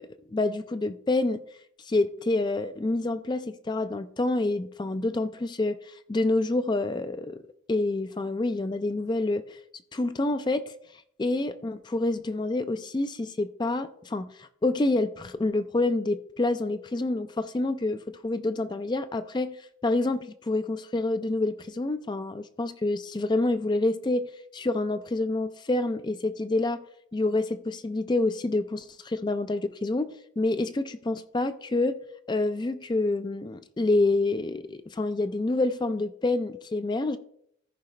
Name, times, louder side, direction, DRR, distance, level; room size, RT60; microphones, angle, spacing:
voice 1, 0.0-1.4 1.9-7.4 7.7-9.6 9.9-10.7 11.2-19.6 19.8-24.3 24.5-26.8 27.1-32.0 32.3-37.2, left 2 dB, 20° left, 0.4 m, -27 dB
14.0 x 5.0 x 3.2 m
head